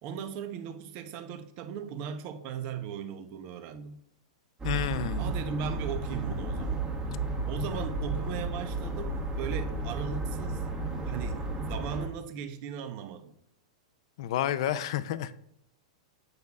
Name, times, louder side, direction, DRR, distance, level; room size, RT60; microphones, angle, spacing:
voice 1, 0.0-4.0 5.1-6.9 7.4-10.7 11.1-11.4 11.7-13.3, right 7 dB, 45° right, 0.8 m, -37 dB
voice 2, 4.6-5.3 14.2-15.4, left 11 dB, 60° left, 0.4 m, -30 dB
sound 1, 4.6-12.1, right 2 dB, 20° right, 1.4 m, -33 dB
8.1 x 6.6 x 2.4 m
hypercardioid pair, 125°, 3 cm